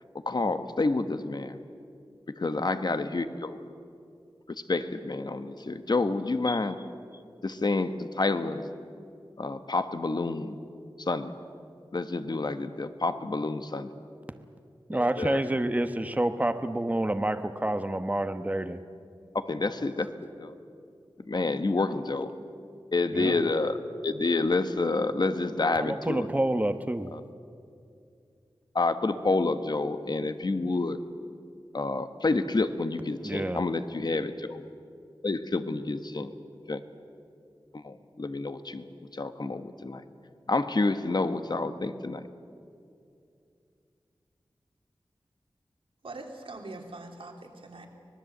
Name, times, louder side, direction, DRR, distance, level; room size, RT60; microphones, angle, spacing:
voice 1, 0.1-1.6 2.4-3.6 4.7-6.8 7.4-8.7 9.4-10.6 11.0-11.3 11.9-13.9 14.9-15.4 19.3-20.5 21.2-22.4 22.9-23.8 24.0-26.3 27.1-27.2 28.7-31.0 31.7-34.6 35.2-36.3 36.7-36.8 37.7-38.9 39.1-40.0 40.5-42.3, left 3 dB, 50° left, 9 dB, 1.3 m, -29 dB
voice 2, 14.9-18.8 23.1-23.4 25.8-27.1 33.2-33.6, right 1 dB, 15° right, 9 dB, 1.0 m, -28 dB
voice 3, 46.0-47.9, right 2 dB, 85° right, 2 dB, 3.1 m, -42 dB
25.0 x 19.5 x 8.0 m, 2.5 s
wide cardioid pair, 70°, 9 cm